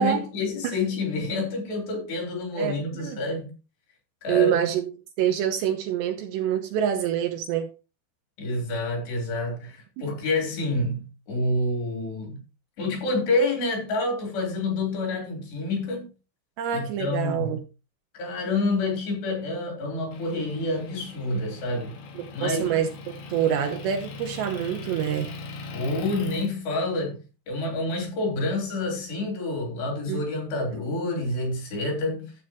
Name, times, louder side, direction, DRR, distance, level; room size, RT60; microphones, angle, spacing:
voice 1, 0.0-3.5 4.2-4.7 8.4-12.4 12.8-16.1 16.7-17.6 18.1-21.9 22.3-22.8 25.7-32.3, left 2 dB, 60° left, 5.6 m, -28 dB
voice 2, 2.6-3.2 4.3-4.9 5.2-7.7 10.0-10.2 16.6-17.6 22.2-22.9 23.3-25.3 30.1-30.2, right 9 dB, 75° right, 2.9 m, -26 dB
Motor vehicle (road) / Engine, 20.1-26.5, left 3 dB, 80° left, 4.5 m, -40 dB
12.0 x 8.3 x 3.0 m
omnidirectional pair, 5.6 m